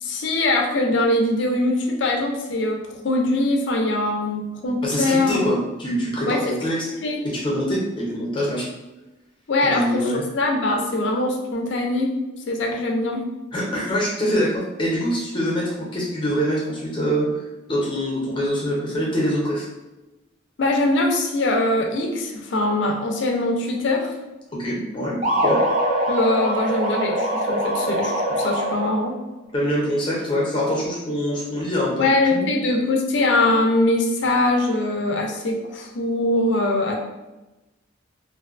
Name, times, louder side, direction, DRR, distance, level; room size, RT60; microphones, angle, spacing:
voice 1, 0.0-5.4 6.3-6.5 7.0-7.2 9.5-12.1 12.5-13.2 20.6-24.1 26.1-29.1 32.0-37.0, left 2 dB, 65° left, 2 dB, 0.4 m, -22 dB
voice 2, 4.8-6.8 7.3-8.7 9.6-10.2 13.5-17.3 17.7-19.7 24.6-25.2 25.4-25.6 29.5-32.4, equal, 25° left, -4 dB, 0.7 m, -24 dB
sound 1, 25.2-29.1, right 1 dB, 35° right, 0.5 m, -23 dB
2.5 x 2.2 x 2.4 m, 1.0 s
head